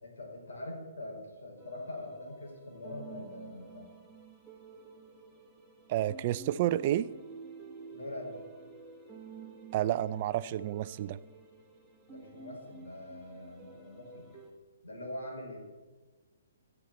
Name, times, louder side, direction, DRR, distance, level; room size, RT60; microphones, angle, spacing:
voice 1, 0.0-3.9 7.9-8.4 12.1-14.3 14.8-15.6, left 1 dB, 90° left, 0 dB, 5.0 m, -43 dB
sound 1, 1.6-14.5, right 5 dB, ahead, 1.5 m, -51 dB
voice 2, 5.9-7.1 9.7-11.2, right 12 dB, 30° right, 15 dB, 0.4 m, -30 dB
13.5 x 7.1 x 7.9 m, 1.3 s
hypercardioid pair, 170°, 0 cm